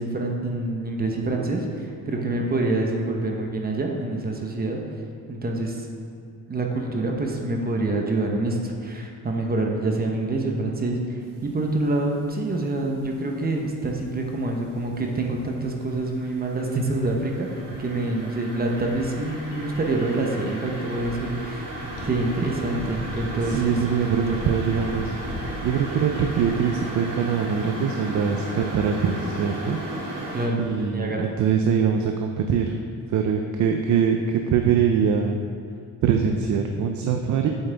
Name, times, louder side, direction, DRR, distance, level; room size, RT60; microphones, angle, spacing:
voice 1, 0.0-4.8 5.3-5.9 6.5-17.5 17.8-23.8 24.3-24.4 30.3-31.3, right 2 dB, 30° right, 1 dB, 0.9 m, -26 dB
sound 1, 11.4-11.8 12.2-13.7 14.1-30.5, right 1 dB, 80° right, 1.5 m, -36 dB
sound 2, 18.6-26.7, left 2 dB, 85° left, 1.6 m, -39 dB
voice 2, 23.4-25.2 25.6-30.1 30.6-32.8 33.1-35.4 36.0-37.5, right 7 dB, 60° right, 4 dB, 0.6 m, -23 dB
8.1 x 7.7 x 3.4 m, 2.3 s
cardioid pair, 125°, 32 cm